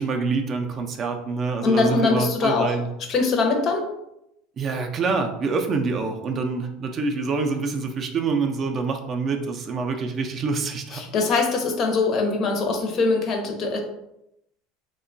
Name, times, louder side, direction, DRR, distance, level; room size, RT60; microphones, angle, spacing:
voice 1, 0.0-2.9 4.6-11.0, right 4 dB, 35° right, 4 dB, 0.3 m, -26 dB
voice 2, 1.6-2.7 3.1-3.9 10.9-13.8, left 3 dB, 45° left, 3 dB, 0.5 m, -22 dB
2.8 x 2.1 x 2.5 m, 0.83 s
supercardioid pair, 110°, 0 cm